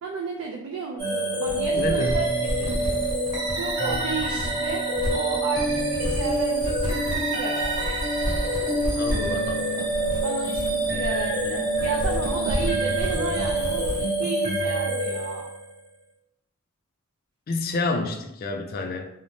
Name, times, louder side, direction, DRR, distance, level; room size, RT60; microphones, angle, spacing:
voice 1, 0.0-2.2 2.6-3.0 3.6-8.0 10.2-15.4, right 4 dB, 70° right, 0 dB, 0.3 m, -33 dB
sound 1, 1.0-15.7, right 1 dB, 20° right, 1.5 m, -26 dB
sound 2, 1.5-14.0, equal, 90° right, 0.8 m, -32 dB
voice 2, 1.7-2.3 9.0-9.9 17.5-19.1, left 3 dB, 45° left, 5 dB, 0.3 m, -29 dB
3.2 x 2.0 x 2.6 m, 0.84 s
head